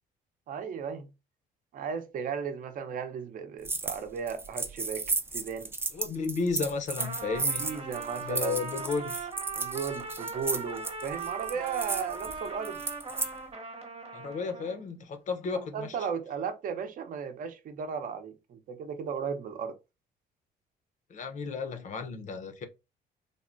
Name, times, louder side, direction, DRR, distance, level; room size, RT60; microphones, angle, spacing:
voice 1, 0.5-1.1 1.7-5.1 5.3-5.7 7.4-8.7 9.6-12.8 15.7-19.7, right 6 dB, 55° right, 0.7 m, -35 dB
sound 1, 3.6-4.0 4.3-13.3, right 3 dB, 15° right, 0.4 m, -34 dB
voice 2, 5.9-7.7 8.2-9.3 14.1-16.0 21.1-22.7, left 5 dB, 45° left, 0.7 m, -33 dB
Trumpet, 7.0-14.8, right 4 dB, 35° right, 1.0 m, -39 dB
3.5 x 2.1 x 2.5 m
cardioid pair, 110°, 17 cm